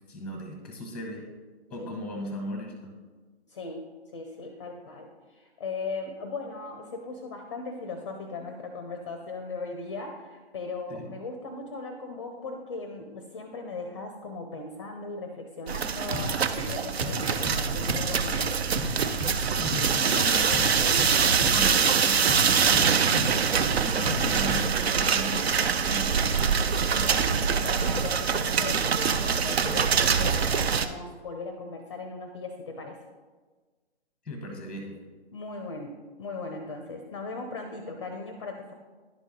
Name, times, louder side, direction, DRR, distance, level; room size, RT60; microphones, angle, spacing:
voice 1, 0.1-1.2 1.7-2.9 10.9-11.1 19.6-20.8 21.3-23.3 23.7-25.5 25.8-26.5 34.2-35.0, left 1 dB, 5° left, 3 dB, 0.9 m, -37 dB
voice 2, 3.5-3.9 4.1-18.5 21.7-21.8 27.0-33.1 35.3-38.7, left 3 dB, 30° left, 4 dB, 0.5 m, -38 dB
sound 1, 15.7-30.9, right 6 dB, 70° right, 0.6 m, -24 dB
sound 2, 16.1-24.6, right 1 dB, 30° right, 1.4 m, -34 dB
11.0 x 4.0 x 3.6 m, 1.4 s
figure-of-eight pair, 145°, 33 cm